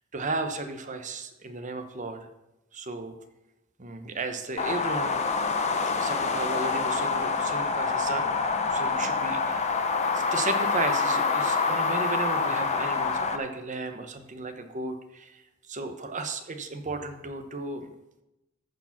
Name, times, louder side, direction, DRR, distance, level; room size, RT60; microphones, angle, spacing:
voice 1, 0.1-2.3 2.7-3.1 3.8-5.2 5.9-9.8 10.1-15.4 15.7-17.9, right 3 dB, 35° right, 7 dB, 0.9 m, -34 dB
sound 1, 4.6-13.4, left 4 dB, 30° left, 0.8 m, -26 dB
14.0 x 4.7 x 5.9 m, 0.94 s
head